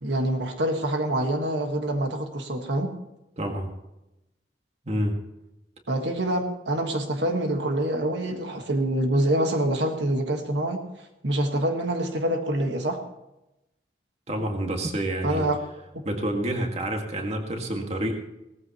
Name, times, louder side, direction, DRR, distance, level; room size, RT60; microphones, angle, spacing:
voice 1, 0.0-2.9 5.9-10.8 11.2-13.0 15.2-15.6, right 1 dB, 75° right, 4 dB, 1.6 m, -26 dB
voice 2, 3.4-3.7 4.9-5.2 14.3-15.5 16.0-18.2, right 1 dB, 35° right, 3 dB, 1.9 m, -28 dB
18.0 x 14.5 x 3.1 m, 0.92 s
head